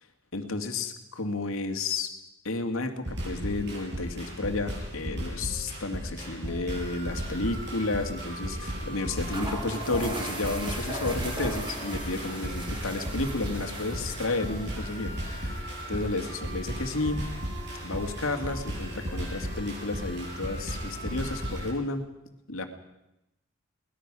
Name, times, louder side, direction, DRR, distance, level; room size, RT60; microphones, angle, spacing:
voice 1, 0.3-2.1 2.4-17.3 17.8-22.1 22.5-22.6, left 2 dB, 70° left, 5 dB, 2.4 m, -32 dB
sound 1, 3.0-21.7, equal, 50° right, 7.9 m, -35 dB
sound 2, 7.1-7.4 7.6-7.7 8.8-8.9 9.2-18.5, right 1 dB, 20° right, 3.8 m, -40 dB
23.0 x 19.5 x 6.2 m, 0.90 s
head